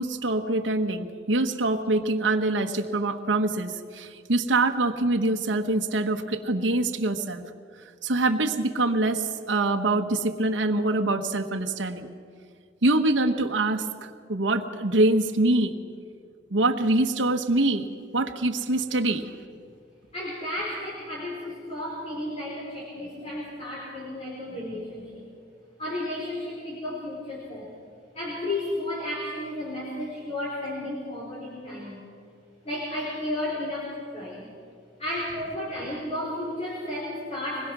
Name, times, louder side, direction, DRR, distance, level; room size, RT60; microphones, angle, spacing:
voice 1, 0.0-7.4 8.0-12.1 12.8-15.7 16.5-19.3, right 2 dB, 80° right, 3 dB, 1.2 m, -24 dB
voice 2, 20.1-25.3 25.8-27.7 28.1-32.0 32.6-34.5 35.0-37.7, left 1 dB, 35° left, -5 dB, 4.7 m, -33 dB
25.0 x 20.5 x 6.1 m, 2.2 s
head